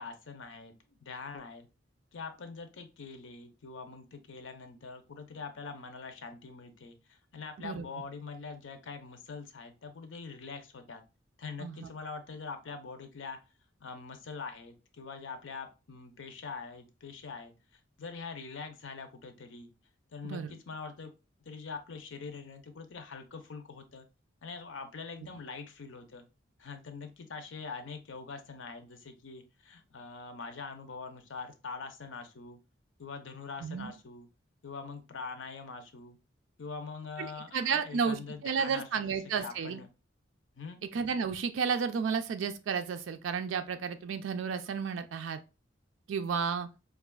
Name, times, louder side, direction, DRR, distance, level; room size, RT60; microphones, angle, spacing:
voice 1, 0.0-1.7 2.1-11.0 11.4-13.4 13.8-17.5 18.0-19.7 20.1-21.1 21.4-24.1 24.4-26.2 26.6-32.6 33.0-34.3 34.6-36.2 36.6-39.9 40.6-40.8, left 4 dB, 75° left, 0.6 m, -44 dB
voice 2, 11.6-11.9 20.2-20.5 33.6-33.9 37.2-39.8 40.9-45.4 46.1-46.7, right 6 dB, 75° right, 0.3 m, -32 dB
4.9 x 2.4 x 2.3 m
head